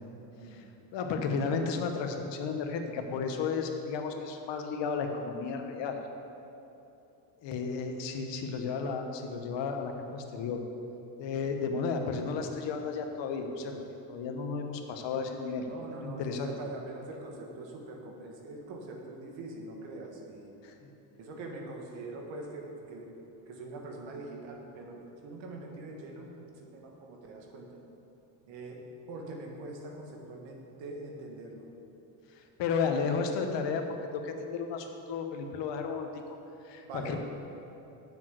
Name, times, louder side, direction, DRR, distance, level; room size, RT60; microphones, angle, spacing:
voice 1, 0.3-0.7 7.6-8.1 15.7-20.5 21.2-23.1 23.5-26.3 26.6-27.7 28.5-28.8 29.1-31.6 36.8-37.2, right 2 dB, 70° right, 1 dB, 1.6 m, -43 dB
voice 2, 0.9-6.0 7.4-10.6 11.2-15.7 15.9-16.5 20.6-20.9 32.6-36.4 36.6-37.2, left 5 dB, 65° left, 5 dB, 1.2 m, -33 dB
7.4 x 6.0 x 7.6 m, 2.9 s
cardioid pair, 100°, 47 cm